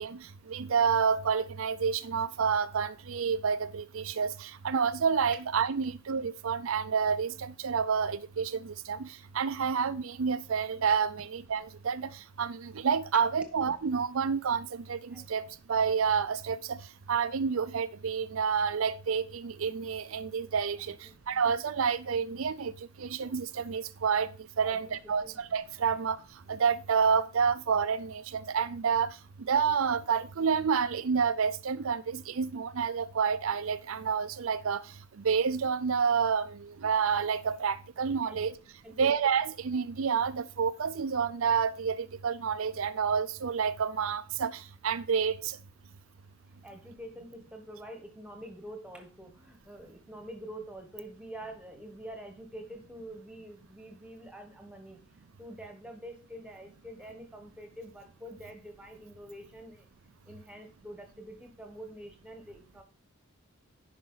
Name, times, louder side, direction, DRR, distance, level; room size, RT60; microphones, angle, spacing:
voice 1, 0.0-15.4 15.7-16.8 17.1-22.7 23.0-24.3 24.6-26.2 26.5-34.8 35.2-38.5 39.0-45.6, right 6 dB, 75° right, 0.5 m, -29 dB
voice 2, 24.6-25.4 25.9-26.0 38.2-38.5 38.8-39.1 46.6-55.0 55.4-59.9 60.3-62.8, right 1 dB, 5° right, 1.2 m, -46 dB
10.0 x 5.2 x 3.9 m
head